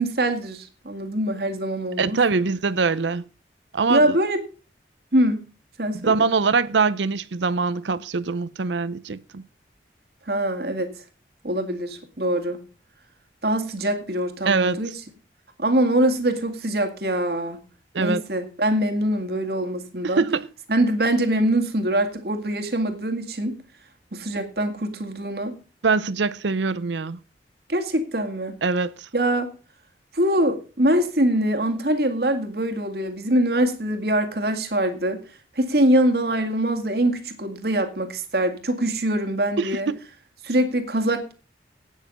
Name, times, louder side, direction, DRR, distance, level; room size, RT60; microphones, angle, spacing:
voice 1, 0.0-2.2 3.9-4.4 5.1-5.4 5.8-6.3 10.3-10.9 11.4-12.6 13.4-14.9 15.6-17.6 18.0-20.2 20.7-23.6 24.1-25.6 27.7-28.6 29.1-29.5 30.1-35.2 35.6-39.9 40.4-41.3, right 1 dB, 60° right, 2.1 m, -23 dB
voice 2, 2.0-3.2 3.7-4.2 5.9-9.4 14.5-14.8 17.9-18.2 20.0-20.5 25.8-27.2 28.6-28.9 39.6-40.0, right 4 dB, 85° right, 0.6 m, -23 dB
12.0 x 9.4 x 5.3 m
head